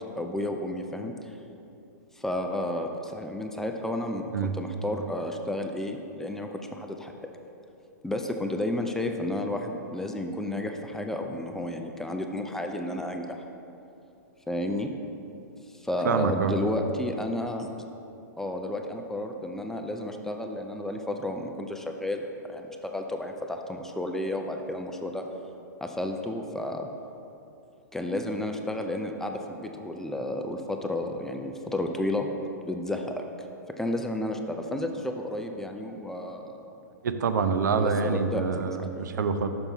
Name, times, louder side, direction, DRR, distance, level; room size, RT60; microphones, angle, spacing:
voice 1, 0.2-1.3 2.2-7.3 8.0-13.4 14.5-14.9 15.8-17.7 18.4-22.2 22.5-25.3 25.8-26.9 27.9-32.3 32.6-33.2 33.8-36.5 37.7-39.1, left 1 dB, 5° left, 3 dB, 0.3 m, -32 dB
voice 2, 16.0-16.5 37.0-39.5, right 5 dB, 80° right, 8 dB, 0.5 m, -26 dB
6.0 x 5.2 x 4.5 m, 2.7 s
hypercardioid pair, 130°, 10 cm